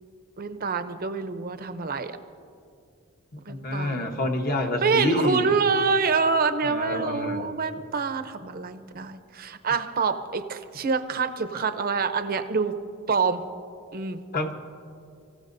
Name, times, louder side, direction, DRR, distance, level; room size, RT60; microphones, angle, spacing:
voice 1, 0.4-2.1 3.5-4.1 4.8-12.7 13.1-13.4 13.9-14.2, right 5 dB, 45° right, 9 dB, 0.7 m, -26 dB
voice 2, 3.3-5.5 6.6-7.5 14.3-14.5, left 1 dB, 45° left, 4 dB, 1.1 m, -27 dB
24.5 x 16.0 x 2.6 m, 2.4 s
head